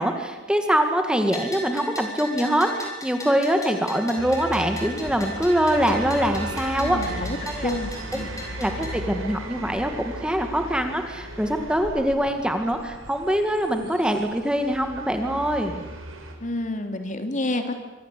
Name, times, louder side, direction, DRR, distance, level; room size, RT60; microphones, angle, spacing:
voice 1, 0.0-7.7 8.1-8.2 8.6-9.9 10.2-15.8, equal, 5° right, 5 dB, 2.0 m, -24 dB
Bell, 1.3-8.9, left 2 dB, 15° left, 6.3 m, -38 dB
sound 1, 4.2-16.3, right 1 dB, 90° right, 5.9 m, -37 dB
voice 2, 6.8-7.4 7.6-8.3 16.4-17.7, left 1 dB, 40° left, 7 dB, 2.8 m, -29 dB
26.0 x 24.5 x 8.4 m, 1.1 s
head